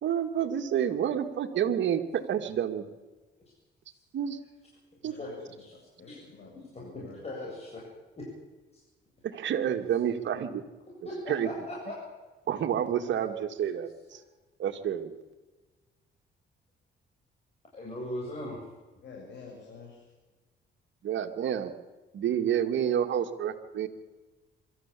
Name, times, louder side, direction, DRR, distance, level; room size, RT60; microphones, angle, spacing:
voice 1, 0.0-2.8 4.1-4.4 5.0-5.1 9.2-10.6 11.3-11.5 12.5-14.2 14.6-15.2 21.0-21.7 22.1-23.9, right 9 dB, 70° right, 6 dB, 2.2 m, -29 dB
voice 2, 5.0-7.6 19.0-20.1, left 4 dB, 65° left, -2 dB, 7.3 m, -49 dB
voice 3, 6.7-7.8 8.2-8.3 8.7-8.8 11.0-12.0 17.7-18.6, left 1 dB, 30° left, -4 dB, 8.0 m, -38 dB
24.0 x 13.5 x 8.6 m, 1.2 s
cardioid pair, 90°, 20 cm